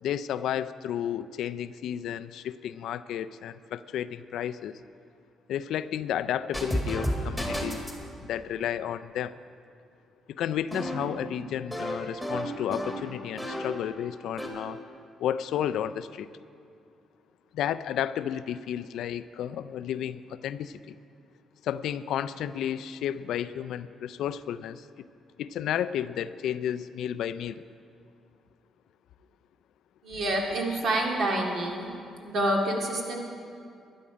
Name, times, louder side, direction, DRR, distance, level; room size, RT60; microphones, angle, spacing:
voice 1, 0.0-4.8 5.5-7.8 8.2-9.4 10.3-14.8 15.2-16.3 17.5-21.0 21.6-25.1 25.4-27.6 30.7-30.8, left 10 dB, 80° left, 14 dB, 0.3 m, -32 dB
sound 1, 6.5-8.0 10.7-13.9 14.2-14.5, equal, 5° right, 2.1 m, -32 dB
voice 2, 30.0-31.9 32.2-33.2, right 1 dB, 60° right, -1 dB, 2.2 m, -27 dB
12.5 x 10.5 x 5.1 m, 2.5 s
cardioid pair, 90°, 0 cm